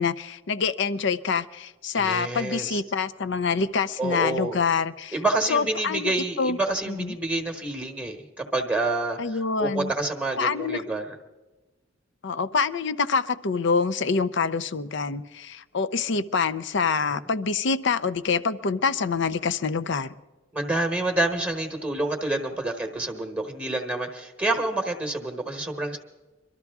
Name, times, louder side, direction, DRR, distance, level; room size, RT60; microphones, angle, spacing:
voice 1, 0.0-5.1 5.5-6.6 6.9-7.2 9.2-9.9 10.4-10.8 12.2-20.1, left 5 dB, 65° left, 13 dB, 0.6 m, -26 dB
voice 2, 1.9-2.8 4.0-4.6 5.1-11.2 20.5-26.0, right 2 dB, 10° right, 3 dB, 1.2 m, -28 dB
24.0 x 13.0 x 3.6 m, 1.1 s
head